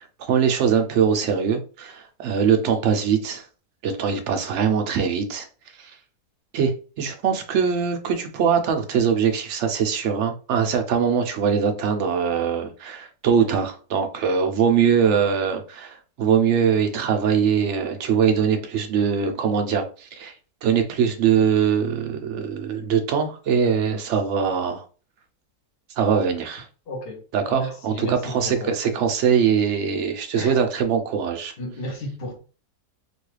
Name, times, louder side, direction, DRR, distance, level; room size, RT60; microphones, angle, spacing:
voice 1, 0.3-3.4 3.8-5.5 5.8-5.9 6.5-20.3 20.6-24.8 26.0-26.7 27.3-31.5, right 7 dB, 70° right, 0.7 m, -22 dB
voice 2, 26.9-28.7 30.4-30.5 31.6-32.4, left 1 dB, 45° left, 0.8 m, -34 dB
3.0 x 2.2 x 3.1 m
omnidirectional pair, 1.7 m